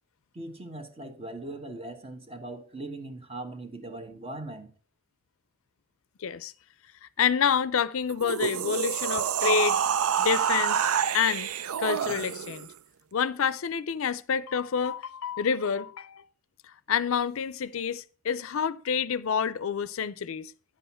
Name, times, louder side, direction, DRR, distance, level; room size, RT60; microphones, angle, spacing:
voice 1, 0.3-4.7, right 2 dB, 25° right, 1.2 m, -40 dB
voice 2, 6.2-6.5 7.0-9.8 10.2-10.9 11.1-11.5 11.8-12.7 13.1-16.2 16.9-20.5, left 7 dB, 65° left, 0.5 m, -28 dB
sound 1, 8.1-12.7, right 8 dB, 90° right, 0.5 m, -27 dB
10.0 x 7.8 x 4.3 m
head